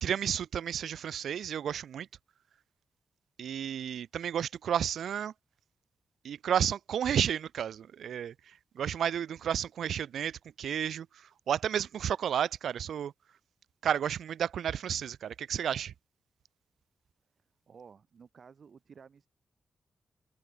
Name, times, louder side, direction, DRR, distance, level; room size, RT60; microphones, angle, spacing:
voice 1, 0.0-2.1 3.4-5.3 6.2-8.3 8.8-11.1 11.5-13.1 13.8-15.9, right 9 dB, 85° right, 0.3 m, -32 dB
voice 2, 17.7-19.3, right 6 dB, 50° right, 4.4 m, -54 dB
open air
wide cardioid pair, 130°, 0 cm